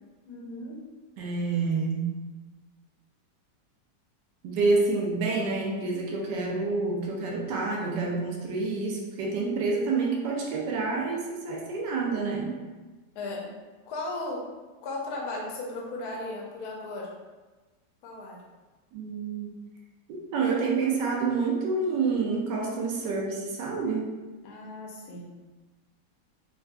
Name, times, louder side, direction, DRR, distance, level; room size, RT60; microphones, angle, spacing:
voice 1, 0.2-0.8 13.1-13.5 13.9-14.5 14.8-17.1 18.0-18.4 24.4-25.3, left 2 dB, 70° left, -2 dB, 1.1 m, -36 dB
voice 2, 1.2-2.0 4.4-12.5 18.9-19.5 20.1-24.1, right 4 dB, 80° right, -2 dB, 1.2 m, -28 dB
4.4 x 2.4 x 2.2 m, 1.2 s
omnidirectional pair, 1.9 m